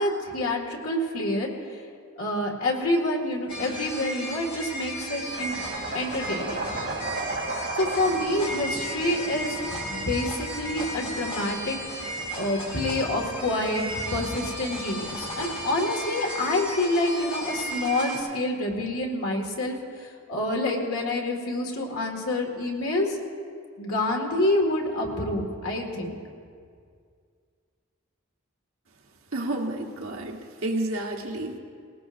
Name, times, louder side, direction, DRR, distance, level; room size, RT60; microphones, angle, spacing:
voice 1, 0.0-1.8 2.2-5.6 5.9-6.8 7.8-11.8 12.3-23.2 23.8-26.2, left 1 dB, 85° left, 0 dB, 2.1 m, -27 dB
sound 1, 3.5-18.2, right 1 dB, 25° left, 3.9 m, -35 dB
sound 2, 5.3-15.7, right 2 dB, 55° right, 3.0 m, -38 dB
voice 2, 29.3-31.6, right 2 dB, 75° right, 1 dB, 1.4 m, -30 dB
20.0 x 19.0 x 2.6 m, 2.1 s
head